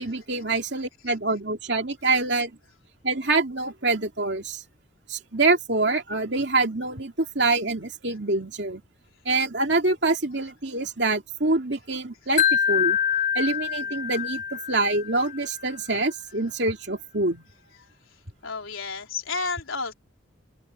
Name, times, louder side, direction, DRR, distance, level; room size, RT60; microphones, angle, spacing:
voice 1, 0.0-2.5 3.0-4.6 5.1-8.8 9.2-13.0 13.3-17.4, right 3 dB, 55° right, 2.7 m, -25 dB
Wind chime, 12.4-15.5, left 8 dB, 35° left, 0.4 m, -25 dB
voice 2, 18.4-19.9, left 4 dB, 85° left, 4.1 m, -31 dB
open air
head